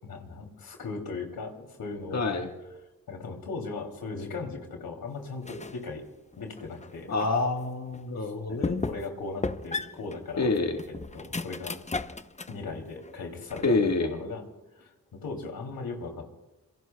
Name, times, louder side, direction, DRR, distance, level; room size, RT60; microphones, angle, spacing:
voice 1, 0.0-2.3 3.1-6.0 6.4-7.1 8.2-10.5 11.1-11.8 12.5-14.4 14.8-16.5, left 4 dB, 85° left, 3 dB, 2.9 m, -38 dB
voice 2, 2.1-2.5 7.1-8.8 10.4-10.8 13.6-14.1, left 3 dB, 50° left, 3 dB, 1.6 m, -27 dB
sound 1, 5.4-5.9 6.3-7.4 7.9-8.0 8.6-9.2 9.4-12.6 13.0-13.9, left 3 dB, 20° left, 0.7 m, -35 dB
27.5 x 22.5 x 2.3 m, 1.1 s
cardioid pair, 55°, 35 cm